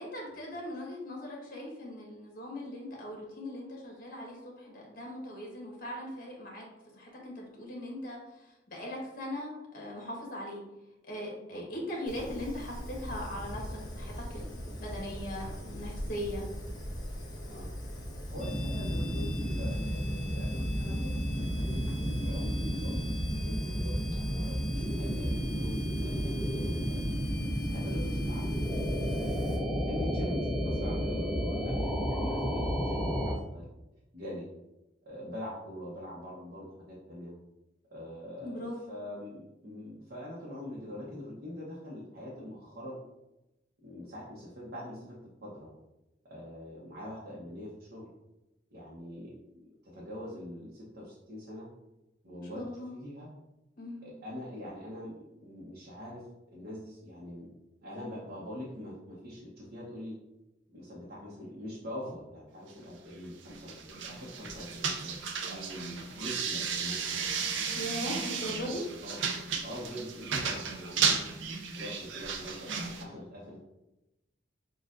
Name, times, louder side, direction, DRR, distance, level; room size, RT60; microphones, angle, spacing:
voice 1, 0.0-6.6 6.9-10.6 11.1-13.6 14.0-16.5 38.4-38.8 52.3-52.9 53.8-54.1 67.7-68.8, equal, 50° left, -1 dB, 1.2 m, -39 dB
Fire, 12.1-29.6, equal, 25° left, 0.8 m, -41 dB
voice 2, 18.3-27.0 27.7-28.6 29.0-33.7 34.1-34.5 35.1-37.3 37.9-43.0 43.8-45.2 45.4-45.7 46.3-48.1 48.7-51.7 52.2-53.3 54.0-56.2 56.5-57.5 57.8-60.1 60.7-65.2 65.4-67.3 68.4-69.2 69.6-71.2 71.7-73.6, left 1 dB, 60° right, -6 dB, 0.9 m, -43 dB
sound 1, 18.4-33.4, equal, 5° left, 0.4 m, -32 dB
sound 2, 63.5-73.0, right 6 dB, 80° right, 0.5 m, -34 dB
6.4 x 2.4 x 2.5 m, 0.96 s
head